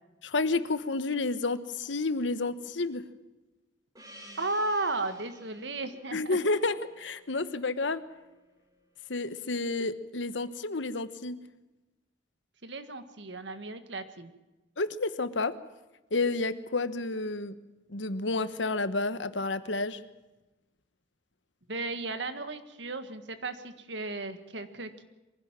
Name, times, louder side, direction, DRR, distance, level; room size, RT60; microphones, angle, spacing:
voice 1, 0.2-3.0 6.1-8.0 9.1-11.4 14.8-15.5 16.1-17.5 17.9-20.0, left 3 dB, 85° left, 13 dB, 1.2 m, -30 dB
Gong, 3.9-8.7, equal, 20° right, 4.7 m, -53 dB
voice 2, 4.4-6.8 12.6-14.3 21.7-25.0, right 2 dB, 70° right, 10 dB, 1.8 m, -35 dB
23.5 x 16.0 x 7.5 m, 1.1 s
head